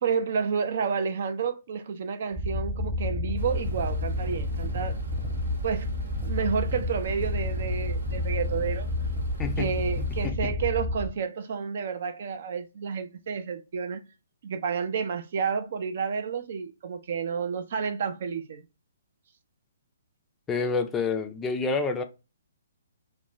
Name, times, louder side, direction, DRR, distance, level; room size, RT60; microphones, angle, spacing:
voice 1, 0.0-5.0 5.6-5.9 6.2-8.9 9.6-14.0 14.4-18.6, right 6 dB, 55° right, 0.5 m, -30 dB
sound 1, 2.4-11.1, left 2 dB, 10° right, 0.8 m, -30 dB
sound 2, 3.4-10.3, right 2 dB, 70° right, 0.9 m, -38 dB
voice 2, 9.4-10.5 20.5-22.0, left 4 dB, 15° left, 0.4 m, -29 dB
2.4 x 2.1 x 3.0 m
hypercardioid pair, 140°, 0 cm